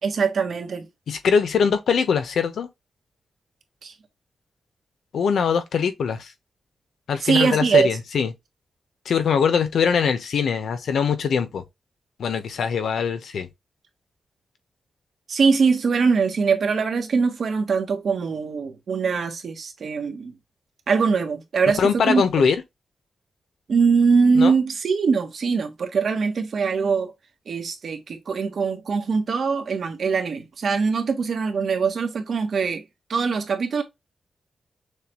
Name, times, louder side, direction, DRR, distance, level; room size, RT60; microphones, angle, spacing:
voice 1, 0.0-0.9 3.8-3.9 7.2-7.9 15.3-20.3 20.9-22.2 23.7-27.1 27.5-32.8 33.1-33.8, right 5 dB, 65° right, 1.3 m, -22 dB
voice 2, 1.1-2.7 5.1-6.3 7.1-8.3 9.1-11.6 12.2-13.5 21.8-22.6 24.4-24.5, left 6 dB, 90° left, 1.0 m, -22 dB
6.6 x 2.5 x 3.1 m
wide cardioid pair, 135°, 0 cm